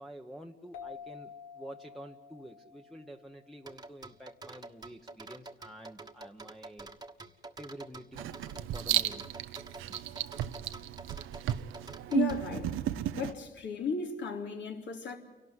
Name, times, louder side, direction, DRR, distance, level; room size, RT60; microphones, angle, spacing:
voice 1, 0.0-6.9 7.6-8.3 8.7-9.4, right 1 dB, ahead, 1.0 m, -48 dB
sound 1, 0.7-4.0, left 7 dB, 90° left, 1.3 m, -50 dB
sound 2, 3.7-12.4, right 3 dB, 20° right, 1.4 m, -47 dB
Writing, 8.1-13.3, right 12 dB, 90° right, 0.8 m, -34 dB
voice 2, 12.1-12.8 13.1-15.2, left 6 dB, 65° left, 3.1 m, -35 dB
29.0 x 12.0 x 9.5 m
cardioid pair, 90°, 20 cm